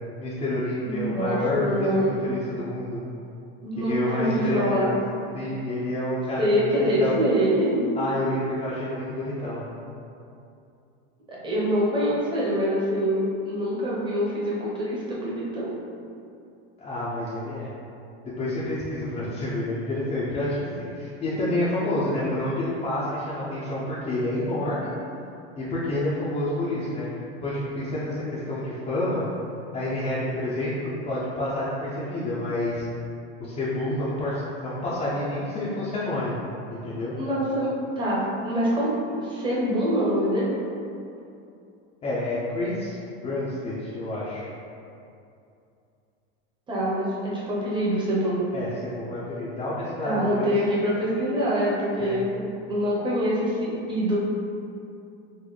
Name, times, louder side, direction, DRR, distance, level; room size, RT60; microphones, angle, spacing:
voice 1, 0.2-1.7 1.9-3.0 3.9-4.9 5.3-7.2 8.0-9.6 16.8-17.7 18.2-24.9 25.6-27.1 27.4-29.3 29.7-32.8 33.4-36.4 36.7-37.2 42.0-42.9 43.2-44.4 48.5-50.5 52.0-52.2, left 1 dB, 20° left, -9 dB, 0.4 m, -28 dB
voice 2, 0.8-2.1 3.6-5.0 6.4-7.8 11.3-15.7 37.2-40.5 46.7-48.4 50.0-54.2, equal, 15° right, -6 dB, 0.7 m, -25 dB
3.9 x 2.1 x 3.1 m, 2.6 s
supercardioid pair, 130°, 33 cm